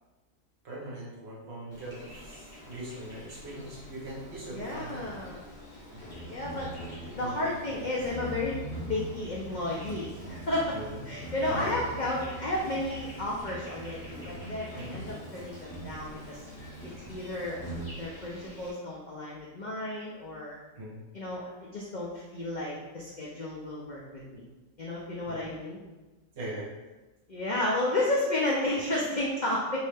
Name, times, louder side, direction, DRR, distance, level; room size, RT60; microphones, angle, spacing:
voice 1, 0.6-5.0 5.9-6.2 7.1-7.5 10.7-11.0 11.5-11.8 14.8-15.0 20.8-21.0 25.3-25.4 26.4-26.7, right 1 dB, 55° right, -4 dB, 1.0 m, -40 dB
Insect, 1.7-18.7, right 1 dB, 30° left, 0.9 m, -42 dB
voice 2, 4.5-5.4 6.2-6.7 7.1-8.6 8.9-10.8 11.0-16.4 17.1-17.6 17.9-20.6 21.1-24.4 24.8-25.8 27.3-29.8, left 1 dB, 65° left, -5 dB, 0.4 m, -32 dB
3.1 x 2.7 x 3.3 m, 1.1 s
omnidirectional pair, 1.4 m